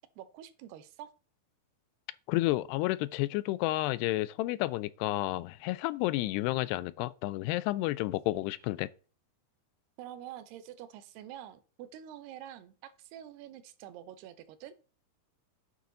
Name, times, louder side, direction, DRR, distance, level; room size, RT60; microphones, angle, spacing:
voice 1, 0.2-1.1 8.5-8.6 10.0-14.8, right 11 dB, 80° right, 2.8 m, -47 dB
voice 2, 2.3-8.9, left 18 dB, 85° left, 2.7 m, -31 dB
9.5 x 6.6 x 4.0 m
omnidirectional pair, 4.7 m